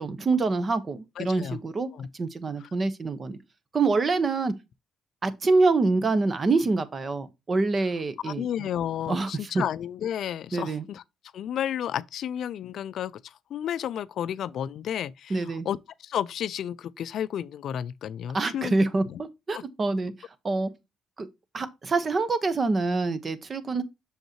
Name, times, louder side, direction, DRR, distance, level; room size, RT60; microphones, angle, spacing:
voice 1, 0.0-1.9 2.2-3.4 3.7-4.5 5.2-8.7 9.1-9.6 10.5-10.8 15.3-15.7 18.3-20.1 20.4-20.7 21.2-21.3 21.5-23.8, right 3 dB, 35° right, 1.0 m, -26 dB
voice 2, 1.2-1.6 1.9-2.1 8.2-11.0 11.3-18.7 19.1-19.2 19.5-19.6, left 10 dB, 70° left, 0.4 m, -32 dB
6.5 x 5.3 x 2.9 m
cardioid pair, 90°, 0 cm